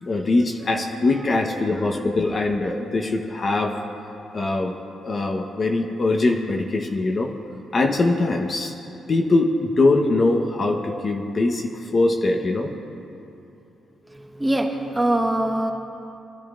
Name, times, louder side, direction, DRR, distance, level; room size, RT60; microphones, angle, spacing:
voice 1, 0.0-3.8 4.3-4.7 5.0-7.3 7.7-8.7 9.1-12.7, left 2 dB, 40° left, 2 dB, 1.1 m, -22 dB
voice 2, 14.1-15.7, right 1 dB, 10° right, 1 dB, 1.3 m, -23 dB
22.5 x 12.0 x 2.5 m, 2.8 s
cardioid pair, 95°, 0 cm